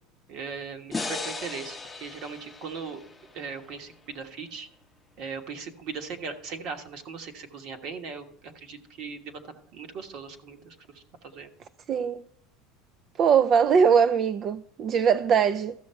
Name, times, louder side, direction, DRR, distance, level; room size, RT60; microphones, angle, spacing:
voice 1, 0.3-3.0 3.3-4.7 5.2-11.5, right 5 dB, 55° right, 1.3 m, -39 dB
sound 1, 0.9-4.1, left 3 dB, 10° left, 0.7 m, -37 dB
voice 2, 11.9-12.3 13.2-15.7, right 7 dB, 35° right, 0.3 m, -21 dB
13.5 x 6.5 x 4.5 m
supercardioid pair, 135°, 0 cm